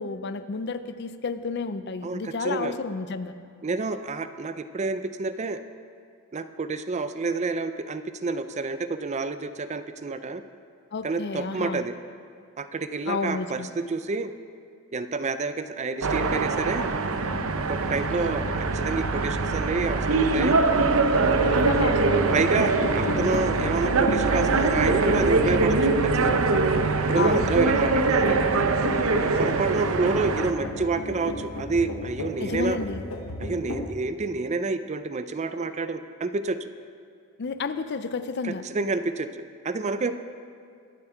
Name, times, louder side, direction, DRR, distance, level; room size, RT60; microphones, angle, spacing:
voice 1, 0.0-3.3 10.9-11.8 13.1-13.7 21.4-22.6 23.2-23.3 27.2-27.5 32.4-33.1 37.4-38.6, left 4 dB, 50° left, 11 dB, 0.5 m, -31 dB
voice 2, 2.0-2.8 3.6-5.6 6.3-10.4 11.0-11.9 12.6-14.3 14.9-16.9 17.7-20.6 21.5-21.6 22.3-26.4 27.1-28.4 29.4-32.8 33.4-36.6 38.4-40.2, right 3 dB, 30° right, 11 dB, 0.4 m, -29 dB
sound 1, 16.0-30.5, right 3 dB, 70° right, 0.7 m, -23 dB
sound 2, 17.2-33.9, left 1 dB, 90° left, 1.0 m, -34 dB
22.0 x 7.3 x 4.5 m, 2.2 s
head